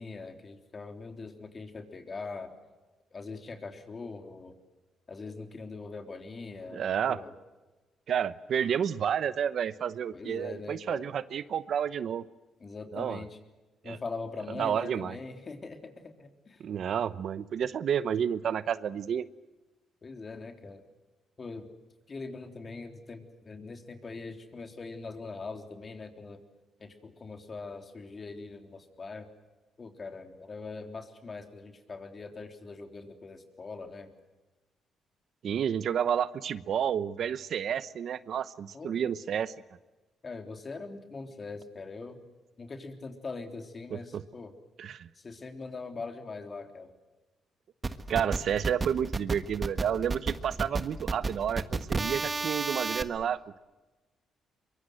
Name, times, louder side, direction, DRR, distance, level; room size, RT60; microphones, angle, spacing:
voice 1, 0.0-2.5 3.1-4.6 5.1-7.3 10.1-11.1 12.6-13.4 13.8-16.6 20.0-20.8 21.4-21.7 22.1-26.4 26.8-29.3 29.8-34.1 38.7-39.0 40.2-42.2 42.6-44.5 45.2-46.9, left 4 dB, 35° left, 5 dB, 3.6 m, -42 dB
voice 2, 6.7-7.2 8.1-12.2 12.9-13.2 13.8-14.0 14.6-15.2 16.6-19.3 35.4-39.5 43.9-44.0 44.8-45.1 48.1-53.6, right 8 dB, 65° right, 15 dB, 0.9 m, -30 dB
sound 1, 47.8-53.0, right 3 dB, 30° right, 1.5 m, -31 dB
23.5 x 23.5 x 7.9 m, 1.2 s
cardioid pair, 90°, 0 cm